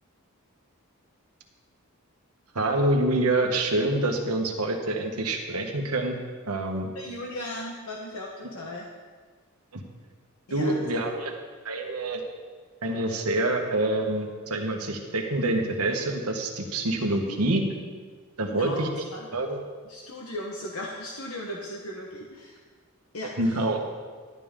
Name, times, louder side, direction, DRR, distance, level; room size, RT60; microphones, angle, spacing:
voice 1, 2.5-6.2 6.5-6.9 9.7-9.8 10.5-11.3 11.6-12.2 12.8-17.6 18.4-18.9 19.3-19.6 23.4-23.8, right 2 dB, 80° right, 3 dB, 1.4 m, -26 dB
voice 2, 6.9-8.9 10.5-10.9 17.2-17.4 18.4-19.3 19.8-22.6 23.1-23.6, left 1 dB, 70° left, -1 dB, 1.2 m, -37 dB
12.0 x 11.0 x 3.7 m, 1.6 s
head